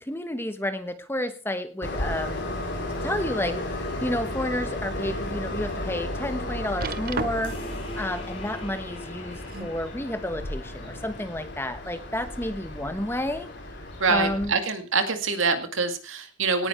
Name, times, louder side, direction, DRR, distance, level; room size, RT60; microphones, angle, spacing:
voice 1, 0.0-2.4 3.0-7.7 7.9-13.5 14.1-14.5, left 1 dB, 10° left, 9 dB, 1.1 m, -31 dB
Train, 1.8-14.5, left 1 dB, 55° left, 4.4 m, -34 dB
sound 1, 2.9-3.7 4.2-4.3 4.9-5.0 6.8-7.7 9.1-9.8 10.7-10.8, right 4 dB, 45° right, 0.6 m, -35 dB
sound 2, 7.4-12.5, left 1 dB, 30° left, 4.9 m, -45 dB
voice 2, 14.0-16.7, right 4 dB, 80° right, 7 dB, 2.2 m, -25 dB
18.0 x 9.8 x 4.4 m, 0.36 s
head